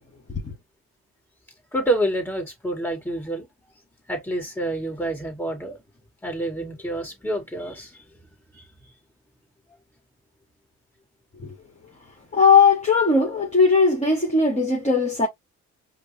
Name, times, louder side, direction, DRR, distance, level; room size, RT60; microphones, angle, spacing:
voice 1, 1.7-3.5 4.1-5.8 6.2-8.0 8.5-8.7, right 1 dB, 5° left, 2.1 m, -28 dB
voice 2, 12.3-15.3, left 4 dB, 25° left, 1.4 m, -18 dB
5.0 x 2.1 x 2.7 m
cardioid pair, 90°, 30 cm